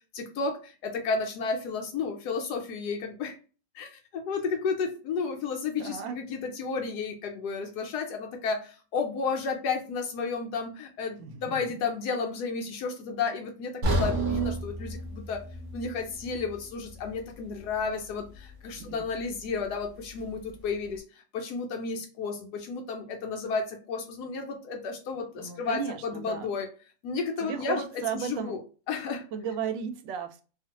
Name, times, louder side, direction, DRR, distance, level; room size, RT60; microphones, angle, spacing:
voice 1, 0.1-3.4 3.7-15.4 15.7-26.7 27.0-28.6 28.9-29.2, left 4 dB, 70° left, 1.0 m, -32 dB
voice 2, 5.8-6.2 11.2-11.6 18.8-19.0 25.3-26.5 27.4-28.6 29.3-30.4, right 7 dB, 85° right, 1.3 m, -35 dB
sound 1, 13.8-17.9 18.2-18.4 19.0-19.1, right 2 dB, 60° right, 0.9 m, -32 dB
2.9 x 2.4 x 2.8 m
omnidirectional pair, 2.0 m